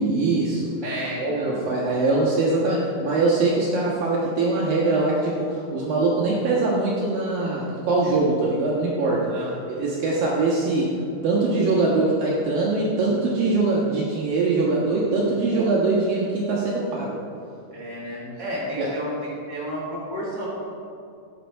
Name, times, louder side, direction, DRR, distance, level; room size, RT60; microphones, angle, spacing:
voice 1, 0.0-0.7 1.2-9.4 9.7-10.9 11.2-17.2 18.8-18.9, right 3 dB, 65° right, -5 dB, 2.7 m, -22 dB
voice 2, 0.8-1.6 9.3-9.5 17.7-20.5, equal, 10° left, -6 dB, 2.2 m, -32 dB
15.0 x 8.5 x 4.5 m, 2.5 s
omnidirectional pair, 5.1 m